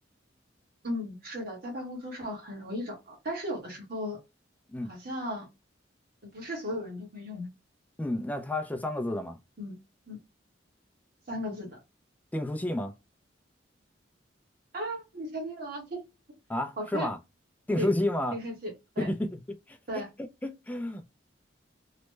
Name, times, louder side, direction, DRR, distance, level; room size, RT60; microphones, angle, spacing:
voice 1, 0.8-4.2 4.9-5.5 6.3-7.5 9.6-9.8 10.1-10.2 11.3-11.8 14.7-16.0 16.8-17.1 17.8-17.9 18.3-19.1 19.9-20.1, equal, 55° right, 1.4 m, -36 dB
voice 2, 8.0-9.4 12.3-12.9 16.5-17.2 17.7-18.4 19.0-19.4 19.7-20.0 20.4-21.0, left 1 dB, 10° left, 0.3 m, -30 dB
3.1 x 2.1 x 3.1 m
head